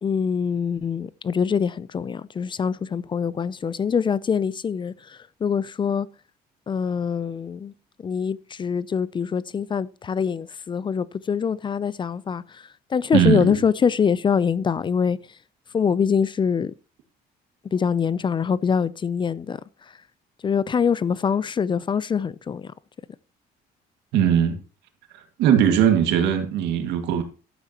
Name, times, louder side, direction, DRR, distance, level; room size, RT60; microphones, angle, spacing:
voice 1, 0.0-6.1 6.7-7.7 8.0-12.6 12.9-15.2 15.7-16.7 17.7-19.6 20.4-22.7, left 6 dB, 30° left, 0.5 m, -24 dB
voice 2, 13.1-13.6 24.1-24.6 25.4-27.2, right 9 dB, 90° right, 2.1 m, -19 dB
12.0 x 8.9 x 2.9 m
cardioid pair, 110°, 17 cm